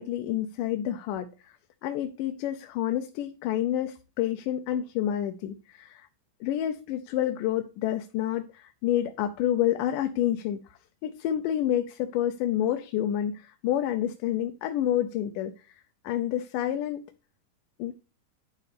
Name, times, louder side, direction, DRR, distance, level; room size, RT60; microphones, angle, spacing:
voice 1, 0.0-1.5 1.8-6.1 6.4-10.6 11.0-17.0 17.8-17.9, left 11 dB, 75° left, 6 dB, 2.3 m, -29 dB
11.5 x 4.2 x 6.7 m, 0.32 s
omnidirectional pair, 3.9 m